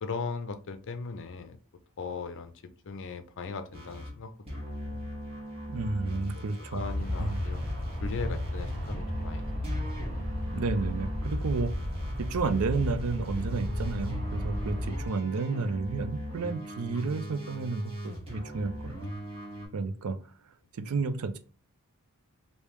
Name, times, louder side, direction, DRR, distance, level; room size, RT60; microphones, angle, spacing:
voice 1, 0.0-1.6 2.0-2.5 2.8-4.3 4.9-5.0 6.1-6.3 6.7-7.6 8.0-9.9, left 4 dB, 60° left, 9 dB, 0.5 m, -38 dB
sound 1, 3.7-4.2 4.5-19.7, equal, 25° right, 1.5 m, -39 dB
voice 2, 5.7-6.8 7.2-7.4 10.5-11.7 12.2-18.9 19.7-20.2 20.8-21.4, right 4 dB, 70° right, 11 dB, 0.4 m, -31 dB
Aircraft, 6.8-15.1, left 1 dB, 50° right, 1.7 m, -34 dB
3.4 x 2.7 x 3.1 m, 0.36 s
head